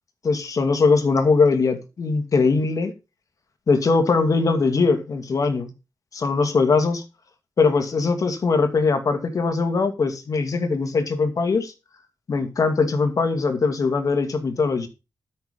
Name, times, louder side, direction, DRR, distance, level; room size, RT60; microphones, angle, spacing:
voice 1, 0.2-2.9 3.7-5.7 6.1-7.0 7.6-11.7 12.3-14.9, left 4 dB, 55° left, 2.4 m, -21 dB
12.5 x 6.4 x 5.4 m
wide cardioid pair, 140°, 7 cm